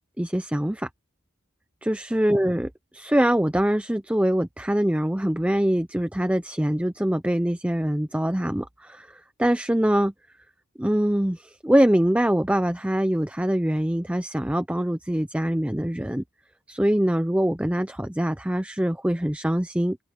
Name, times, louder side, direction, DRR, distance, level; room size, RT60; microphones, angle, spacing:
voice 1, 0.2-0.9 1.8-10.1 10.8-16.2 16.7-20.0, right 1 dB, 5° right, 0.5 m, -24 dB
head